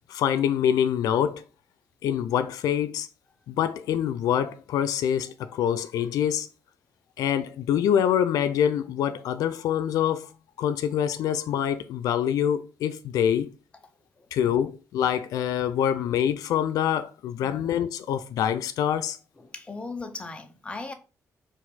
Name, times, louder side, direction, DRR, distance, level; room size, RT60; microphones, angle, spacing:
voice 1, 0.1-1.4 2.0-3.1 3.5-6.5 7.2-10.3 10.6-13.5 14.3-19.2, left 9 dB, 90° left, 0.4 m, -25 dB
voice 2, 17.4-17.8 19.4-20.9, left 3 dB, 20° left, 0.7 m, -38 dB
4.2 x 2.5 x 4.0 m
cardioid pair, 115°, 6 cm